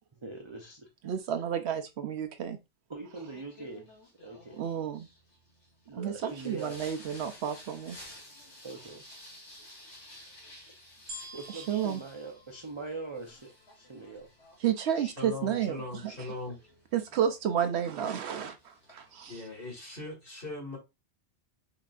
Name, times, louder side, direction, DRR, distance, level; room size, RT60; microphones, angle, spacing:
voice 1, 0.2-0.9 2.9-3.9 4.2-4.7 5.9-6.8 8.6-9.0 11.3-13.5 13.8-14.3, right 3 dB, 35° right, 0.5 m, -42 dB
voice 2, 1.0-2.6 4.6-5.1 5.9-8.0 11.7-12.0 14.6-16.1 16.9-19.4, right 9 dB, 70° right, 0.8 m, -31 dB
Singing, 3.1-20.1, left 1 dB, 70° left, 1.9 m, -54 dB
sound 1, 11.1-13.5 14.1-14.2, equal, 85° right, 1.8 m, -47 dB
voice 3, 15.0-16.6 19.3-20.8, left 2 dB, 50° left, 2.2 m, -40 dB
5.7 x 2.7 x 2.4 m
omnidirectional pair, 1.2 m